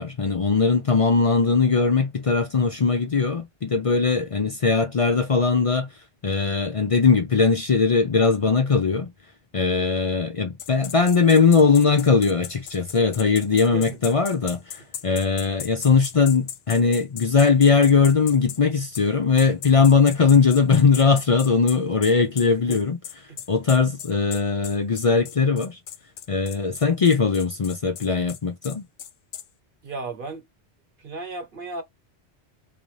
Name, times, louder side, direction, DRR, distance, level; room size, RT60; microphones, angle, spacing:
voice 1, 0.0-5.9 6.2-9.1 9.5-23.0 23.5-25.8 26.3-28.8, left 5 dB, 45° left, 0.4 m, -20 dB
sound 1, 10.6-18.6 18.9-19.1 19.4-29.5, left 9 dB, 65° left, 0.8 m, -37 dB
voice 2, 29.8-30.4 31.0-31.8, right 3 dB, 50° right, 1.2 m, -34 dB
3.5 x 2.6 x 3.1 m
omnidirectional pair, 1.2 m